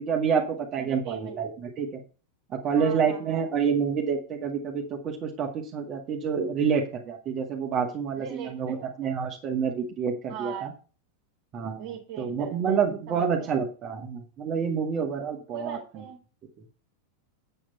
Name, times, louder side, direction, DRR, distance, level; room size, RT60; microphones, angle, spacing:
voice 1, 0.0-2.0 2.5-10.7 11.5-11.9 12.2-15.8, right 6 dB, 30° right, 1 dB, 1.9 m, -28 dB
voice 2, 0.8-1.4 2.7-3.4 8.2-9.1 10.3-10.7 11.8-13.6 15.5-16.2, right 8 dB, 50° right, 0 dB, 2.2 m, -40 dB
8.5 x 8.2 x 4.3 m, 0.35 s
figure-of-eight pair, 90°, 0 cm